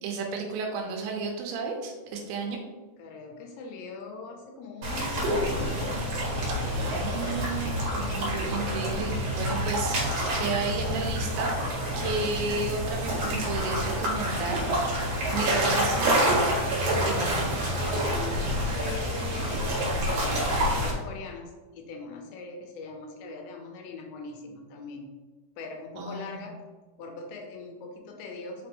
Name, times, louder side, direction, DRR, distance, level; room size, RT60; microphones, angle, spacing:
voice 1, 0.0-2.6 6.7-10.0 10.3-11.5 12.0-16.2 16.9-17.6 26.0-26.5, right 4 dB, 85° right, 2 dB, 3.0 m, -33 dB
voice 2, 3.0-5.9 15.2-15.8 18.0-25.1 25.6-26.6 27.0-28.7, left 4 dB, 85° left, 2 dB, 2.8 m, -41 dB
sound 1, 4.8-20.9, equal, 55° right, 2.3 m, -27 dB
5.8 x 5.2 x 3.1 m, 1.3 s
omnidirectional pair, 5.3 m